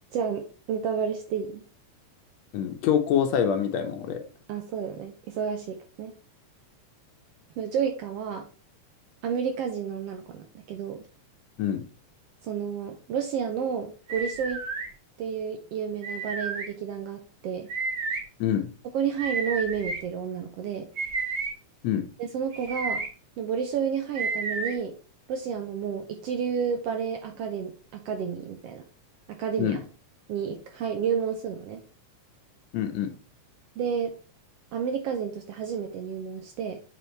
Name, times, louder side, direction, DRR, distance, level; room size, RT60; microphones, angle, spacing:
voice 1, 0.1-1.6 4.5-6.1 7.6-8.5 9.2-11.0 12.4-14.6 15.2-17.7 18.9-20.9 22.2-23.0 23.4-24.9 25.3-28.8 29.3-29.8 30.3-31.8 33.8-34.1 34.7-36.8, right 7 dB, 70° right, 5 dB, 1.5 m, -30 dB
voice 2, 2.5-4.2 11.6-11.8 18.4-18.7 21.8-22.1 29.6-29.8 32.7-33.1, left 9 dB, 70° left, 7 dB, 1.9 m, -25 dB
sound 1, 14.1-14.9 16.0-16.7 17.7-18.2 19.2-20.0 21.0-21.5 22.5-23.1 24.2-24.7, right 4 dB, 50° right, 1.2 m, -31 dB
8.3 x 3.6 x 4.4 m, 0.37 s
omnidirectional pair, 3.3 m